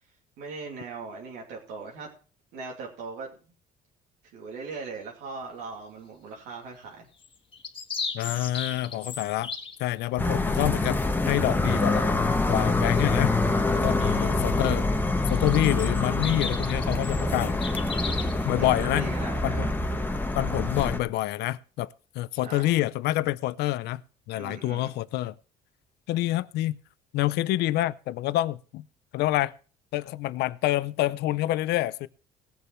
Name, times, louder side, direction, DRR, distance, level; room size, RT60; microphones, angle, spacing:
voice 1, 0.4-2.1 2.5-3.3 4.3-7.1 14.0-14.4 18.6-19.7 22.4-22.7 24.3-24.9, right 4 dB, 90° right, 2.5 m, -39 dB
sound 1, 7.2-9.8 15.3-18.4, left 5 dB, 30° left, 1.6 m, -36 dB
voice 2, 8.1-9.5 9.8-11.0 11.3-12.1 12.5-13.3 13.7-14.9 15.3-17.6 18.4-19.1 19.4-19.7 20.3-24.0 24.3-25.3 26.1-26.8 27.1-28.8 29.1-29.5 29.9-32.1, left 15 dB, 80° left, 0.5 m, -27 dB
sound 2, 10.2-21.0, left 2 dB, 10° left, 1.1 m, -26 dB
18.5 x 6.9 x 4.4 m
cardioid pair, 110°, 17 cm